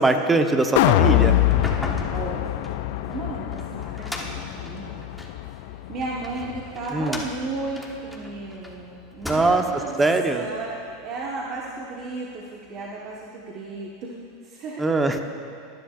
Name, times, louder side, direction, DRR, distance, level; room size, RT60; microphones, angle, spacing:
voice 1, 0.0-1.4 6.9-7.2 9.2-9.6 10.0-10.5 14.8-15.2, right 2 dB, 15° right, 6 dB, 1.0 m, -21 dB
sound 1, 0.8-7.0 7.4-7.5, left 15 dB, 65° left, 0.4 m, -24 dB
sound 2, 1.4-5.4 6.0-8.7 9.1-9.8, left 1 dB, ahead, 1.3 m, -36 dB
voice 2, 2.1-2.7 3.1-5.1 5.4-10.0 10.3-14.2 14.4-14.9, right 3 dB, 45° right, -4 dB, 1.3 m, -34 dB
19.0 x 10.0 x 2.5 m, 2.5 s
hypercardioid pair, 105°, 0 cm